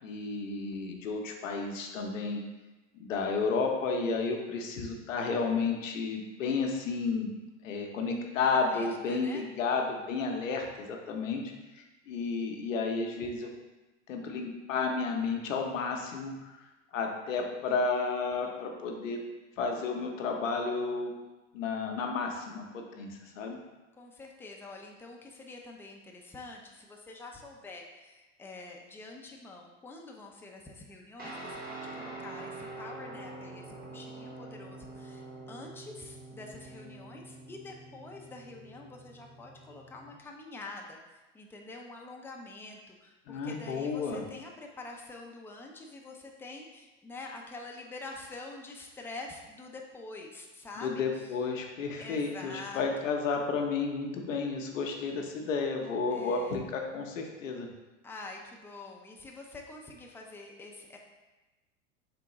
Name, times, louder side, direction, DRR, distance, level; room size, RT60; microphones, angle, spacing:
voice 1, 0.0-2.4 3.0-7.3 7.6-11.4 11.7-13.5 14.1-16.6 16.9-19.2 19.6-21.1 21.5-23.6 43.3-44.2 50.8-57.7, left 4 dB, 85° left, 2 dB, 0.7 m, -32 dB
voice 2, 8.4-9.4 24.0-51.4 52.0-53.2 56.1-56.6 58.0-61.0, left 3 dB, 5° left, 0 dB, 0.4 m, -46 dB
Guitar, 31.2-40.1, right 2 dB, 25° right, 0.9 m, -45 dB
3.7 x 3.5 x 2.9 m, 1.1 s
hypercardioid pair, 90°, 38 cm